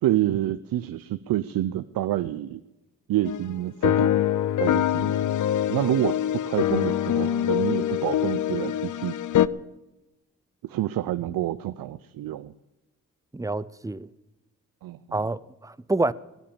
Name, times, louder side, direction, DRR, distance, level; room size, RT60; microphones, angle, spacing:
voice 1, 0.0-2.6 3.1-4.1 4.6-5.3 5.7-9.1 10.6-12.5 14.8-15.2, right 13 dB, 80° right, 0.5 m, -28 dB
sound 1, 3.3-3.4 3.8-9.5, left 11 dB, 60° left, 0.6 m, -24 dB
voice 2, 13.3-14.1 15.1-16.1, right 2 dB, 10° right, 0.6 m, -27 dB
17.0 x 10.0 x 7.1 m
supercardioid pair, 45°, 34 cm